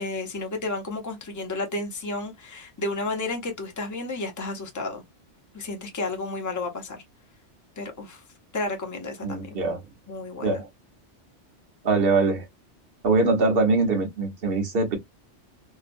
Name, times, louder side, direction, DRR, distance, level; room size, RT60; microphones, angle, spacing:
voice 1, 0.0-5.0 5.5-7.0 7.8-8.2 8.5-9.5 10.1-10.6, left 2 dB, 20° left, 0.6 m, -32 dB
voice 2, 9.2-9.8 10.4-10.7 11.8-12.5 13.0-15.0, right 3 dB, 55° right, 1.1 m, -22 dB
2.9 x 2.2 x 2.5 m
omnidirectional pair, 1.2 m